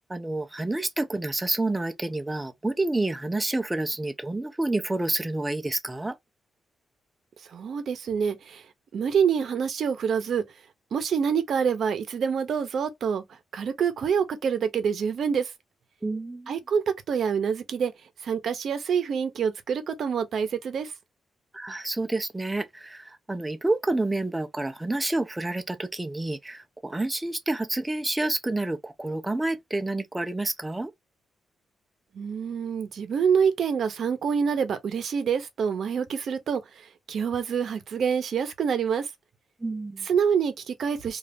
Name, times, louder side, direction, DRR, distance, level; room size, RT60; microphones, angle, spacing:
voice 1, 0.1-6.2 16.0-16.5 21.5-30.9 39.6-40.1, right 2 dB, 10° right, 0.4 m, -29 dB
voice 2, 7.5-8.6 8.9-10.4 10.9-13.2 13.5-15.5 16.5-17.9 18.2-20.9 32.1-39.1 40.0-41.2, right 7 dB, 65° right, 0.7 m, -26 dB
2.5 x 2.3 x 3.3 m
cardioid pair, 125°, 0 cm